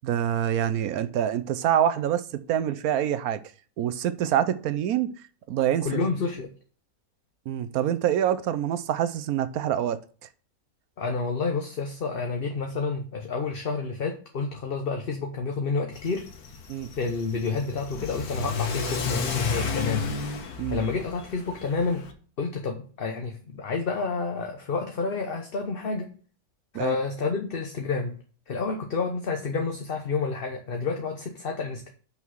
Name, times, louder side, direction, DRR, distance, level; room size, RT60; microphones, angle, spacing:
voice 1, 0.0-3.4 3.8-5.1 5.5-5.9 7.5-10.0 16.7-16.9 20.6-20.8 26.7-27.0, right 10 dB, 75° right, 1.1 m, -26 dB
voice 2, 5.8-6.5 11.0-16.3 16.9-20.1 20.7-22.0 22.4-26.1 26.7-28.2 28.5-31.9, left 4 dB, 45° left, 1.0 m, -29 dB
Car / Accelerating revving vroom, 15.9-22.1, left 5 dB, 80° left, 1.6 m, -32 dB
6.0 x 5.7 x 6.1 m
omnidirectional pair, 1.6 m